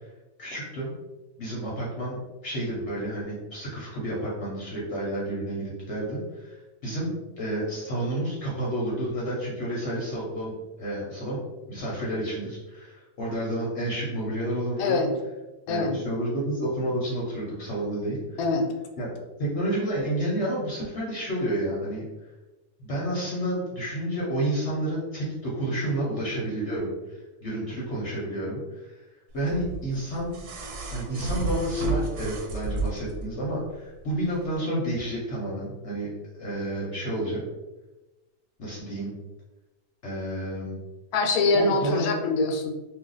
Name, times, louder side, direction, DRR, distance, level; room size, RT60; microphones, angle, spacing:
voice 1, 0.4-0.9 1.4-10.5 10.8-11.4 11.7-15.0 15.7-18.4 19.0-19.1 19.4-22.0 22.8-29.0 29.3-30.3 30.9-37.4 38.6-39.1 40.0-40.8 41.5-42.1, right 1 dB, 55° left, -5 dB, 0.9 m, -30 dB
voice 2, 14.8-15.1 15.7-16.0 18.4-18.7 41.1-42.7, left 3 dB, 80° left, 3 dB, 1.1 m, -24 dB
sound 1, 29.5-33.2 34.5-34.6, right 2 dB, 80° right, 1.1 m, -31 dB
2.5 x 2.4 x 3.8 m, 1.1 s
omnidirectional pair, 1.6 m